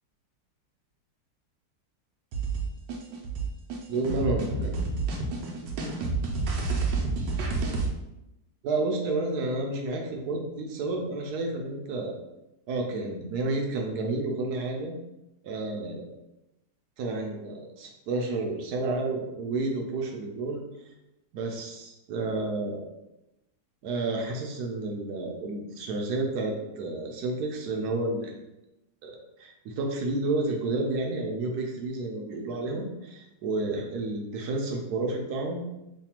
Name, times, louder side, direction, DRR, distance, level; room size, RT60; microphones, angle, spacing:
sound 1, 2.3-7.9, right 3 dB, 85° right, 1.3 m, -29 dB
voice 1, 3.9-4.7 5.5-5.6 8.6-12.2 12.7-14.9 15.4-16.1 17.0-20.6 21.3-22.9 23.8-28.4 29.0-35.7, right 2 dB, 70° right, 1 dB, 1.0 m, -30 dB
3.3 x 2.3 x 4.3 m, 0.93 s
omnidirectional pair, 1.9 m